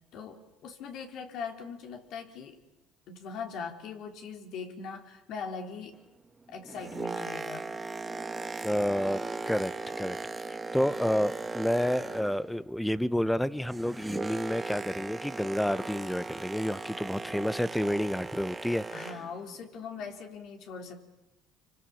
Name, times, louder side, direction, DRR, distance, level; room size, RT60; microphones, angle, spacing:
voice 1, 0.1-2.6 3.1-5.9 6.5-7.7 18.9-21.0, left 5 dB, 65° left, 4.2 m, -40 dB
Boat Water vehicle, 6.5-12.6 12.9-19.4 20.0-20.1, right 3 dB, 20° right, 1.6 m, -38 dB
voice 2, 8.6-9.2 9.5-9.7 10.0-10.2 10.5-19.1, equal, 5° left, 1.2 m, -29 dB
28.5 x 24.5 x 7.4 m
supercardioid pair, 85°, 0 cm